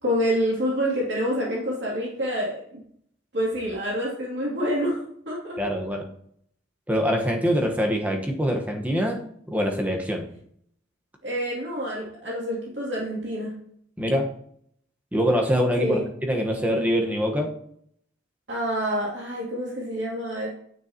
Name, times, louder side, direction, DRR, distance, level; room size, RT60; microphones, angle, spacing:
voice 1, 0.0-2.8 3.3-5.0 5.3-5.6 11.2-13.5 15.8-16.0 18.5-20.5, equal, 60° right, -6 dB, 2.7 m, -27 dB
voice 2, 5.6-6.1 6.9-10.3 14.0-14.3 15.1-17.5, equal, 10° right, 2 dB, 1.2 m, -24 dB
9.4 x 9.4 x 2.9 m, 0.67 s
head